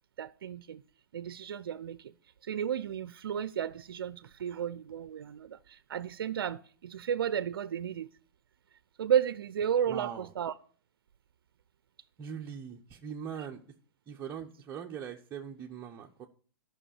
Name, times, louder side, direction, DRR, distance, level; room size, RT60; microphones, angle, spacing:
voice 1, 0.2-0.8 1.1-2.1 2.4-8.1 9.0-10.5, right 9 dB, 75° right, 0.5 m, -33 dB
voice 2, 9.9-10.3 12.2-13.6 14.1-16.3, right 8 dB, 20° right, 0.9 m, -41 dB
11.0 x 5.8 x 7.1 m
hypercardioid pair, 135°, 12 cm